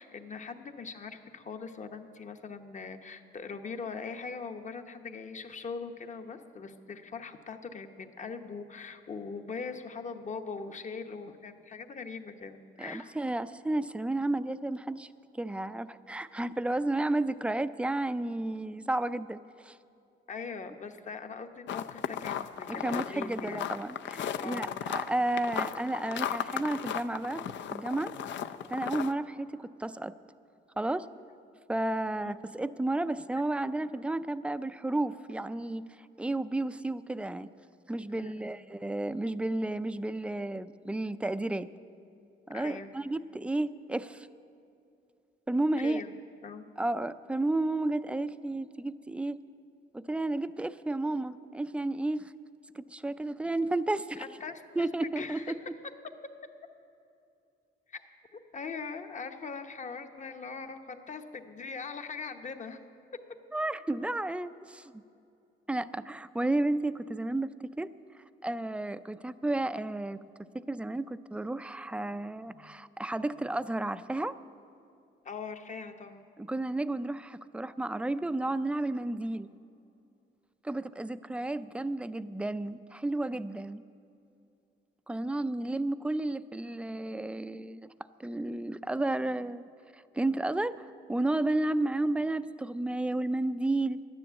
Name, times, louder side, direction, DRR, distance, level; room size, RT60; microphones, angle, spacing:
voice 1, 0.0-13.1 20.3-23.6 24.4-24.8 32.2-32.3 38.1-38.5 42.5-42.9 45.8-46.6 54.2-54.9 55.2-55.7 57.9-58.0 58.3-62.8 72.5-72.7 75.2-76.2, left 5 dB, 40° left, 7 dB, 1.0 m, -41 dB
voice 2, 12.8-15.1 15.3-19.8 22.7-27.4 27.7-28.1 28.7-30.1 30.8-31.1 31.7-35.8 36.2-37.5 37.9-41.7 42.5-44.3 45.5-46.0 46.8-49.4 49.9-52.3 52.7-54.3 54.8-55.4 63.5-65.0 65.7-67.5 67.8-67.9 68.4-70.2 70.5-74.4 76.4-79.5 80.6-83.8 85.1-87.9 88.2-89.7 89.9-90.8 91.1-94.0, right 2 dB, 5° right, 14 dB, 0.4 m, -32 dB
sound 1, 21.7-29.1, left 9 dB, 65° left, 0.5 m, -35 dB
11.5 x 10.0 x 8.1 m, 2.6 s
cardioid pair, 90°, 20 cm